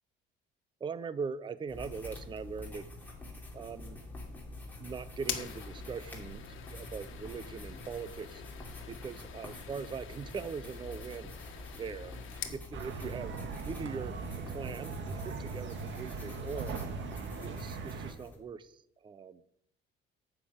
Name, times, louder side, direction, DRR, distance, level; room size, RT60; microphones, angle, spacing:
voice 1, 0.8-2.9 3.5-4.0 4.8-8.4 8.9-11.3 11.8-12.1 12.5-13.4 13.7-16.8 17.4-19.4, right 5 dB, 25° right, 15 dB, 0.5 m, -41 dB
sound 1, 1.7-18.4, left 2 dB, 10° left, 3.0 m, -46 dB
sound 2, 5.2-12.6, left 9 dB, 70° left, 1.5 m, -45 dB
sound 3, 12.7-18.1, right 5 dB, 60° right, 1.6 m, -40 dB
9.5 x 6.7 x 8.6 m, 0.75 s
cardioid pair, 130°, 21 cm